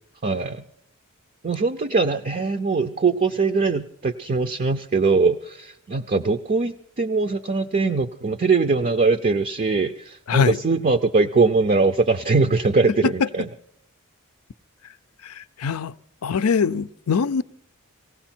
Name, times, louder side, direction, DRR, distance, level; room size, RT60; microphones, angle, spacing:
voice 1, 0.2-0.6 1.4-13.5, right 4 dB, 40° right, 0.5 m, -21 dB
voice 2, 15.2-15.9 16.2-17.4, left 5 dB, 80° left, 0.5 m, -22 dB
18.5 x 16.0 x 4.4 m
head